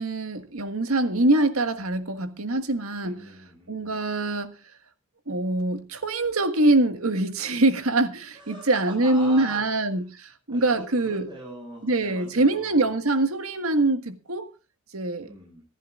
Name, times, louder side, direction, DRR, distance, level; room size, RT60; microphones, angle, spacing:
voice 1, 0.0-3.3 3.7-4.5 5.3-11.3 11.8-14.5 14.9-15.3, right 2 dB, 75° right, 1.7 m, -24 dB
voice 2, 3.0-4.0 8.3-9.6 10.5-12.9 15.2-15.6, right 1 dB, 20° right, 7.3 m, -42 dB
25.5 x 11.0 x 2.5 m
head